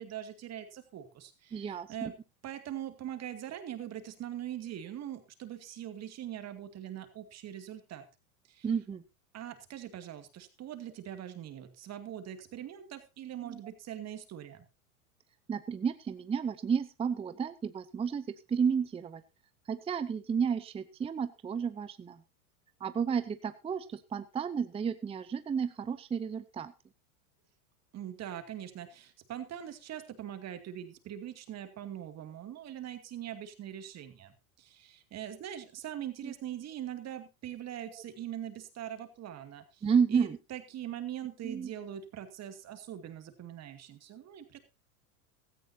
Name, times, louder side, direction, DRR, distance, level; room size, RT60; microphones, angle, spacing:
voice 1, 0.0-2.1 2.4-8.1 8.5-8.7 9.3-14.7 27.9-44.6, right 11 dB, 35° right, 8 dB, 2.3 m, -42 dB
voice 2, 1.5-2.1 8.6-9.0 13.4-13.6 15.5-19.2 19.7-22.2 22.8-26.7 36.2-36.3 37.9-38.0 39.8-40.4 41.4-41.7, right 6 dB, 15° right, 12 dB, 0.6 m, -32 dB
16.5 x 13.5 x 2.8 m, 0.26 s
hypercardioid pair, 110°, 44 cm